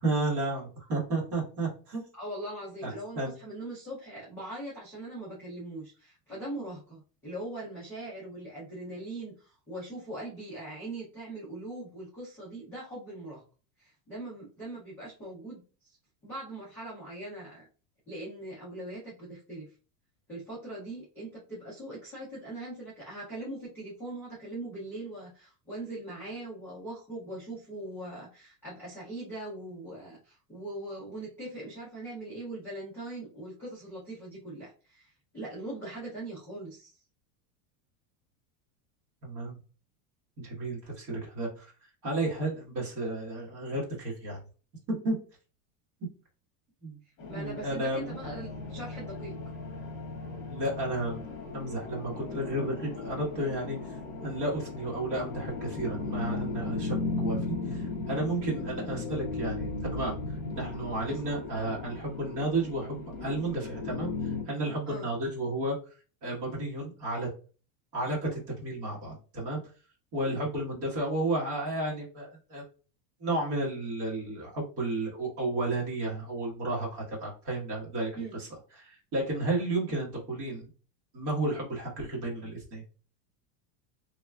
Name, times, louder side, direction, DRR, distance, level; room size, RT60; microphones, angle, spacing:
voice 1, 0.0-2.0 2.8-3.3 39.2-39.6 40.4-41.7 42.0-44.4 45.0-45.2 46.8-47.0 47.3-48.3 50.5-60.2 60.5-65.8 66.2-67.3 67.9-69.6 70.1-72.6 73.2-78.5 78.8-80.7 81.1-82.8, right 2 dB, 30° right, -3 dB, 1.2 m, -32 dB
voice 2, 2.1-13.4 13.8-15.6 16.2-17.7 18.1-19.7 20.3-36.9 47.3-49.3 61.1-61.2 64.9-65.1 78.1-78.4, right 1 dB, 5° left, -11 dB, 0.4 m, -41 dB
sound 1, 47.2-64.4, left 3 dB, 60° left, 1.4 m, -36 dB
3.4 x 3.0 x 2.2 m, 0.37 s
supercardioid pair, 180°, 45 cm